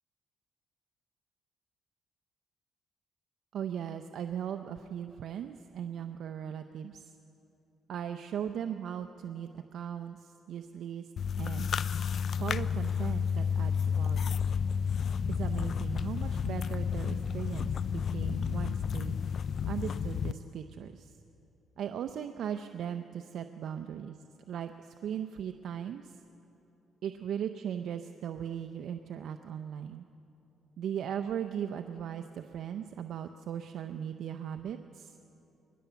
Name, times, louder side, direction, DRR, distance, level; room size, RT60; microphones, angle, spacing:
voice 1, 3.5-7.1 7.9-11.1 11.4-11.7 12.4-14.3 15.3-19.2 19.6-21.1 21.8-24.2 24.5-26.2 27.0-30.1 30.8-35.1, right 9 dB, 70° right, 7 dB, 0.7 m, -38 dB
sound 1, 11.2-20.3, left 7 dB, 55° left, 0.5 m, -31 dB
22.0 x 19.5 x 7.0 m, 2.8 s
cardioid pair, 90°, 0 cm